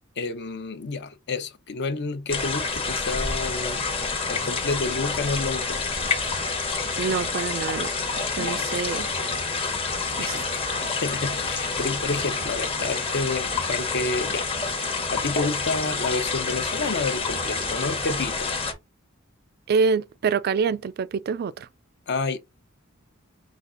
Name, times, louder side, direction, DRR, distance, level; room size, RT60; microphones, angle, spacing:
voice 1, 0.2-3.9 4.3-5.8 8.4-8.7 10.2-14.8 15.1-18.6 22.1-22.4, left 3 dB, 55° left, 0.7 m, -30 dB
sound 1, 2.3-18.7, left 4 dB, 25° left, 0.9 m, -28 dB
voice 2, 7.0-7.9 8.3-9.1 10.2-10.4 19.7-21.7, right 5 dB, 45° right, 0.3 m, -26 dB
5.1 x 2.4 x 3.8 m
head